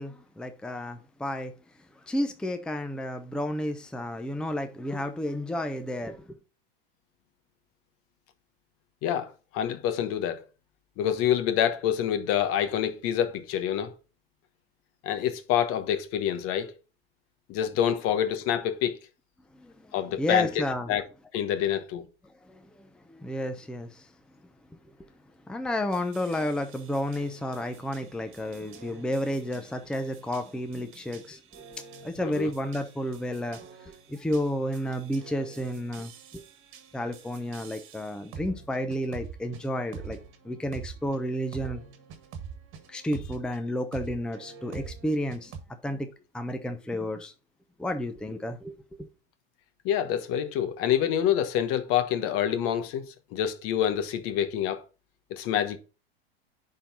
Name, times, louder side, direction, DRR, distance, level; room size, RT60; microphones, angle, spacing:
voice 1, 0.0-1.5 2.0-6.3 19.5-20.9 22.5-24.1 25.5-31.4 32.0-36.4 36.9-40.2 40.4-41.8 42.9-45.5 45.8-46.1 46.3-47.3 47.8-49.1, left 1 dB, 5° left, 0.7 m, -31 dB
voice 2, 9.0-10.4 11.0-13.9 15.0-16.7 17.5-19.0 19.9-20.6 20.9-21.0 21.3-22.1 32.2-32.5 49.8-54.8 55.3-55.8, left 10 dB, 50° left, 1.1 m, -27 dB
sound 1, 25.9-43.6 43.9-45.6, right 6 dB, 40° right, 1.7 m, -46 dB
10.0 x 3.9 x 3.9 m
hypercardioid pair, 100°, 30 cm